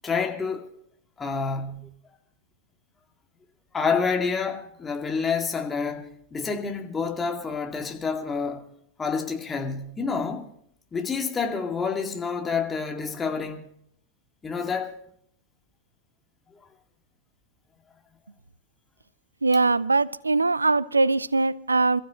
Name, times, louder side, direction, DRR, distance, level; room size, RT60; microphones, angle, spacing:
voice 1, 0.0-0.7 1.2-1.9 3.7-8.6 9.0-10.5 10.9-13.7 14.4-15.0, left 5 dB, 15° left, 2.2 m, -28 dB
voice 2, 19.4-22.0, right 3 dB, 80° right, 0.5 m, -22 dB
27.5 x 15.0 x 3.0 m
figure-of-eight pair, 90°, 0 cm